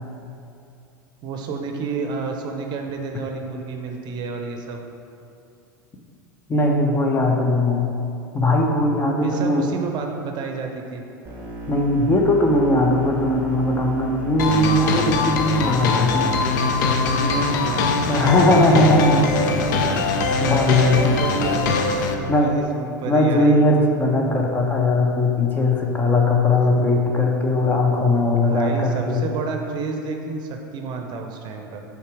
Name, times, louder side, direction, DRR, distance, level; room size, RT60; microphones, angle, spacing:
voice 1, 1.2-4.8 9.2-11.0 17.0-18.8 19.5-20.3 20.9-21.8 22.1-23.6 26.8-26.9 28.4-31.8, right 4 dB, 40° right, 3 dB, 0.7 m, -30 dB
voice 2, 6.5-7.9 8.3-9.7 11.7-16.3 18.1-19.4 20.4-21.1 22.3-22.5 23.1-29.2, left 1 dB, 20° left, 1 dB, 0.8 m, -19 dB
sound 1, 11.2-21.2, right 1 dB, 20° right, 1.4 m, -36 dB
sound 2, 14.4-22.1, left 4 dB, 65° left, 0.5 m, -22 dB
5.5 x 3.9 x 4.8 m, 2.6 s
hypercardioid pair, 90°, 11 cm